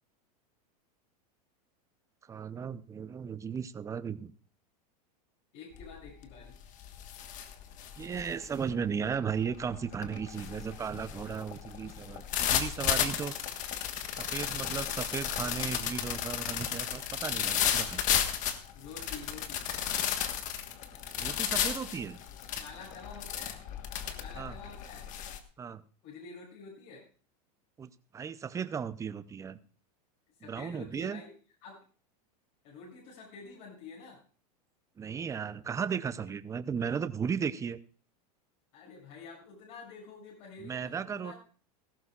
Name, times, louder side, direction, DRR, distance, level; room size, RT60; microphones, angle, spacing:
voice 1, 2.3-4.3 8.0-13.3 14.2-18.0 21.2-22.2 24.4-24.5 25.6-25.8 27.8-29.6 30.4-31.2 35.0-37.8 40.6-41.3, right 7 dB, 15° right, 14 dB, 0.6 m, -35 dB
voice 2, 5.5-6.6 18.7-19.7 22.6-23.6 24.2-25.1 26.0-27.0 30.4-31.3 31.6-31.8 32.6-34.2 38.7-41.3, left 4 dB, 55° left, -3 dB, 6.9 m, -48 dB
sound 1, 5.8-6.1 6.5-25.4, left 9 dB, 40° left, 1.4 m, -34 dB
18.0 x 14.0 x 2.4 m, 0.39 s
supercardioid pair, 135°, 20 cm